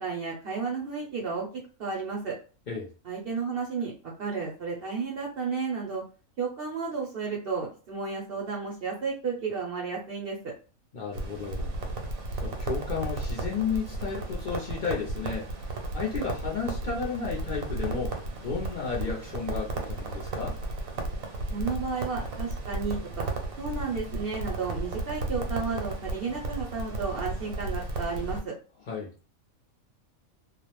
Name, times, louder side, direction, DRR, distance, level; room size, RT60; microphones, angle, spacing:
voice 1, 0.0-2.4 3.0-3.9 4.2-6.0 6.4-10.5 21.5-23.3 23.6-28.5, right 5 dB, 60° right, -2 dB, 0.7 m, -32 dB
voice 2, 10.9-11.7 12.4-18.1 18.4-20.6 28.9-29.1, left 6 dB, 60° left, -4 dB, 0.5 m, -33 dB
Crackle, 11.1-28.4, right 2 dB, 75° right, 1.0 m, -34 dB
2.3 x 2.0 x 2.9 m, 0.36 s
omnidirectional pair, 1.4 m